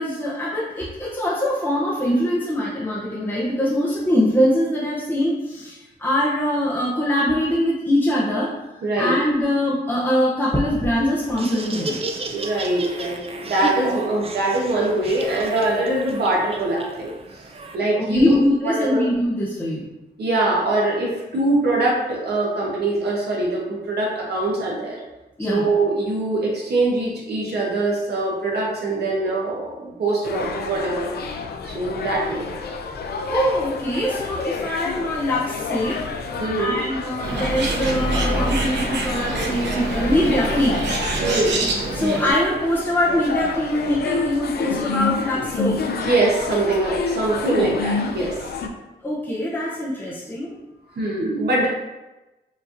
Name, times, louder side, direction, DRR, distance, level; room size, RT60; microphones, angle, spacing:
voice 1, 0.0-12.0 17.9-19.9 25.4-25.7 33.3-36.0 36.6-40.9 41.9-45.8 49.0-50.6, left 1 dB, 10° left, -6 dB, 0.6 m, -23 dB
voice 2, 8.8-9.1 12.3-17.1 17.7-18.4 18.6-19.0 20.2-25.0 25.5-31.1 31.6-32.5 36.4-36.9 38.2-38.3 41.2-41.5 46.0-48.3 51.0-51.7, right 2 dB, 65° right, -4 dB, 0.9 m, -23 dB
Laughter, 11.2-17.8, right 3 dB, 35° right, 0.4 m, -33 dB
sound 1, 30.2-48.7, left 4 dB, 65° left, 0.4 m, -29 dB
Bird, 37.2-42.3, right 2 dB, 90° right, 0.6 m, -25 dB
4.9 x 2.8 x 2.5 m, 1.1 s
cardioid pair, 100°, 18 cm